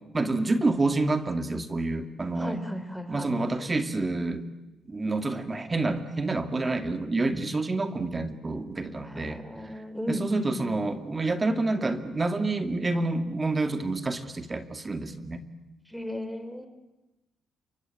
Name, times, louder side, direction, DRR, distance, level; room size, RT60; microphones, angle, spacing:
voice 1, 0.1-2.6 3.1-4.5 4.9-9.7 10.1-15.4, right 2 dB, 25° right, 8 dB, 2.3 m, -28 dB
voice 2, 2.3-3.3 9.0-10.8 15.9-16.7, equal, ahead, 10 dB, 4.0 m, -36 dB
28.5 x 23.5 x 8.8 m, 1.0 s
cardioid pair, 90°, 0 cm